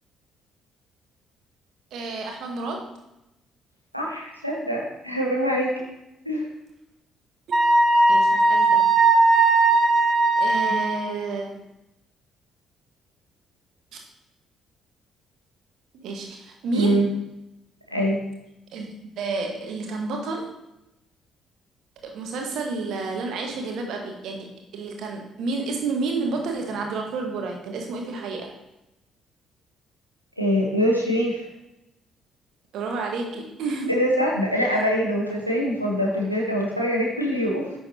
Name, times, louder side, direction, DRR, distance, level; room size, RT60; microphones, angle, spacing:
voice 1, 1.9-3.0 7.5-7.6 8.1-8.8 10.4-11.6 13.9-14.0 15.9-17.0 18.7-20.5 22.1-28.5 32.7-33.9, right 3 dB, 55° right, 2 dB, 1.5 m, -30 dB
voice 2, 3.9-5.7 6.2-6.4 16.7-17.1 17.9-18.2 30.4-31.4 33.9-37.7, equal, 90° left, -2 dB, 1.2 m, -23 dB
Wind instrument woodwind instrument, 7.5-11.0, right 3 dB, 40° right, 1.0 m, -18 dB
9.8 x 6.3 x 2.9 m, 0.90 s
figure-of-eight pair, 45°, 0 cm